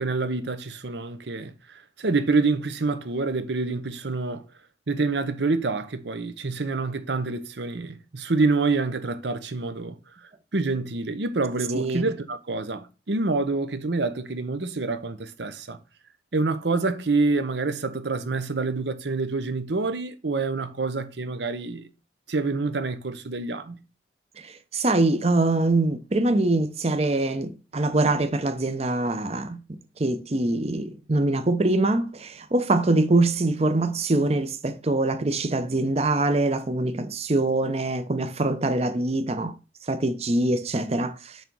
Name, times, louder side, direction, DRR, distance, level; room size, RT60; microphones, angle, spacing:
voice 1, 0.0-1.5 2.0-4.4 4.9-10.0 10.5-15.8 16.3-21.9 22.3-23.8, right 3 dB, 80° right, 0.8 m, -27 dB
voice 2, 11.7-12.1 24.4-29.6 30.0-39.6 39.9-41.4, right 2 dB, 35° right, 0.7 m, -24 dB
6.5 x 3.4 x 6.1 m
head